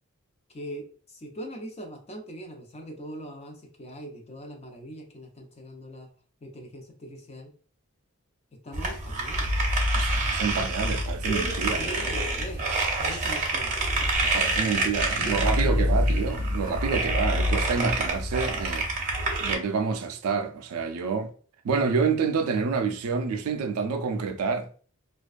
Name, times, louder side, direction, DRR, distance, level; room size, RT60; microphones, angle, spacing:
voice 1, 0.5-6.1 6.4-7.5 8.5-9.5 10.4-10.7 11.2-14.3 14.8-16.3, equal, 30° left, 0.5 m, -41 dB
sound 1, 8.7-19.6, right 1 dB, 35° right, 0.6 m, -26 dB
voice 2, 10.0-11.8 14.3-18.9 19.4-21.3 21.6-24.7, right 5 dB, 80° right, 0.4 m, -28 dB
2.3 x 2.2 x 2.4 m
head